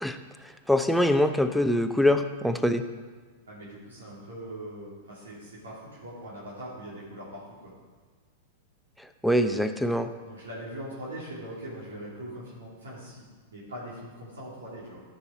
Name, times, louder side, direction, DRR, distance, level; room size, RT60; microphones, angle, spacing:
voice 1, 0.7-2.8 9.2-10.1, left 1 dB, ahead, 7 dB, 0.6 m, -23 dB
voice 2, 3.5-7.7 10.2-15.0, right 1 dB, 85° right, -7 dB, 2.9 m, -41 dB
13.0 x 5.5 x 4.6 m, 1.4 s
hypercardioid pair, 105°, 0 cm